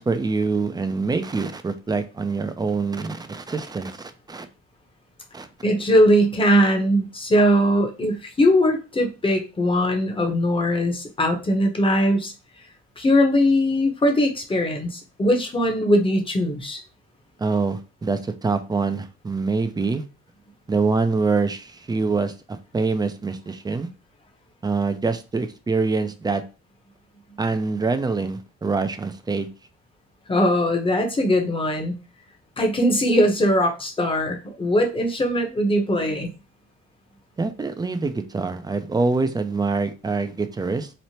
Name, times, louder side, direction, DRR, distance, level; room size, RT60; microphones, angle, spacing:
voice 1, 0.0-4.5 5.3-5.5 17.4-20.0 20.7-23.9 24.6-26.4 27.4-29.5 37.4-40.9, right 4 dB, 15° right, 9 dB, 0.3 m, -25 dB
voice 2, 5.6-12.3 13.0-16.8 30.3-31.9 32.6-36.3, equal, 20° left, 3 dB, 0.7 m, -20 dB
3.1 x 2.1 x 2.7 m, 0.31 s
cardioid pair, 90°, 30 cm